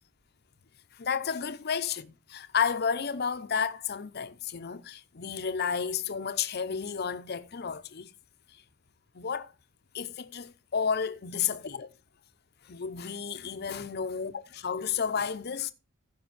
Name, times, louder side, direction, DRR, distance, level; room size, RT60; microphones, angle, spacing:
voice 1, 0.9-2.1 2.3-8.1 8.5-8.6 9.1-9.5 9.9-11.9 12.6-15.7, left 6 dB, 55° left, 0.7 m, -32 dB
14.5 x 5.5 x 4.1 m
head